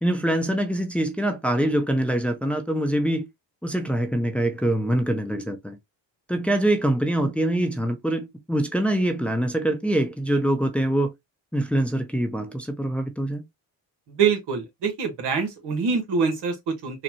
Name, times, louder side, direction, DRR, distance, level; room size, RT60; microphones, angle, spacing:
voice 1, 0.0-3.3 3.6-5.8 6.3-11.1 11.5-13.4, right 1 dB, 5° left, 0.6 m, -24 dB
voice 2, 14.2-17.0, right 5 dB, 75° right, 1.3 m, -25 dB
4.0 x 2.2 x 2.9 m
cardioid pair, 75°, 41 cm